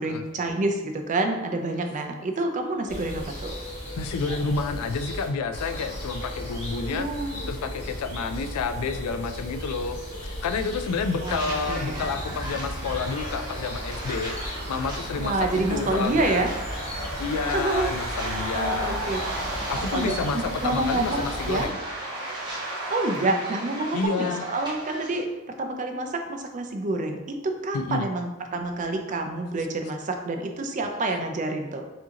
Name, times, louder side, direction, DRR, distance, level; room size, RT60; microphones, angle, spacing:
voice 1, 0.0-3.5 6.9-7.5 11.2-12.1 15.1-16.5 17.4-17.9 18.2-19.2 19.9-21.2 21.5-21.7 22.9-25.3 25.6-31.9, right 2 dB, 35° right, 4 dB, 0.4 m, -28 dB
sound 1, 2.9-21.7, equal, 25° left, 1.5 m, -35 dB
voice 2, 4.0-16.5 17.0-19.1 19.7-21.8 23.9-24.4 27.7-28.1, left 5 dB, 85° left, 9 dB, 0.3 m, -30 dB
sound 2, 11.2-25.2, equal, 20° right, 1.0 m, -39 dB
sound 3, 12.8-24.1, right 2 dB, 65° right, 0.9 m, -36 dB
4.9 x 2.7 x 2.8 m, 1.1 s
head